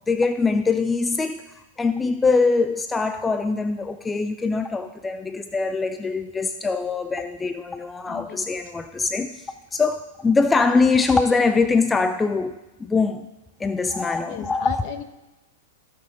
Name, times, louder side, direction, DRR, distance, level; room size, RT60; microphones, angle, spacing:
voice 1, 0.0-1.4 1.8-13.3 13.6-14.9, left 4 dB, 10° left, 0.4 m, -23 dB
voice 2, 8.1-8.5 14.3-15.0, left 10 dB, 50° left, 1.0 m, -36 dB
17.0 x 6.2 x 3.8 m
hypercardioid pair, 120°, 0 cm